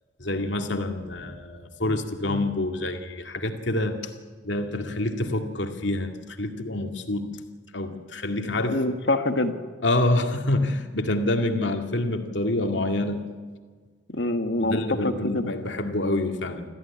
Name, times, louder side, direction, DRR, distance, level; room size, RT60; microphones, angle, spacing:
voice 1, 0.2-4.0 4.4-7.3 7.7-8.8 9.8-13.3 14.6-16.7, left 2 dB, 80° left, 4 dB, 2.2 m, -27 dB
voice 2, 8.7-9.6 14.1-15.5, left 2 dB, 65° left, 7 dB, 1.7 m, -25 dB
26.0 x 15.0 x 9.7 m, 1.5 s
head